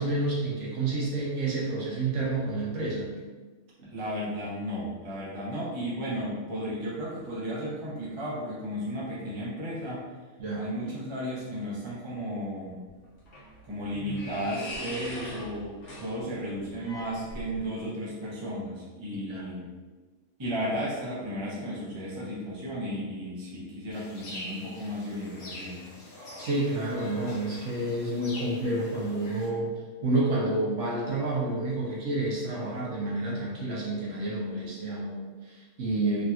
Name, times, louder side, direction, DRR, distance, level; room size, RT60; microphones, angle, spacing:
voice 1, 0.0-3.1 3.8-3.9 10.4-10.7 19.3-19.5 26.4-29.7 30.0-36.2, right 2 dB, 65° right, -5 dB, 0.9 m, -29 dB
voice 2, 3.8-10.0 10.5-12.8 13.7-19.7 20.4-25.8, equal, 30° right, -6 dB, 0.5 m, -34 dB
sound 1, 12.9-17.9, equal, 50° left, 0.9 m, -41 dB
sound 2, 23.9-29.5, left 1 dB, 85° left, 1.3 m, -44 dB
3.2 x 2.7 x 2.3 m, 1.3 s
omnidirectional pair, 1.5 m